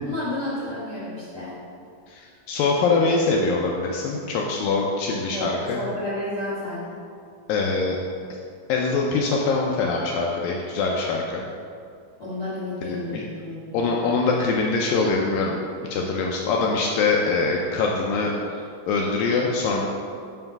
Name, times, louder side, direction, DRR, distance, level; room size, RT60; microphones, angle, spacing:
voice 1, 0.0-1.6 5.3-6.9 12.2-13.9, left 1 dB, 50° left, -10 dB, 1.1 m, -31 dB
voice 2, 2.1-5.8 7.5-8.0 8.7-11.4 12.8-13.2 13.7-15.6 15.9-19.8, left 4 dB, 85° left, -1 dB, 2.0 m, -23 dB
5.6 x 5.3 x 5.8 m, 2.3 s
omnidirectional pair, 4.7 m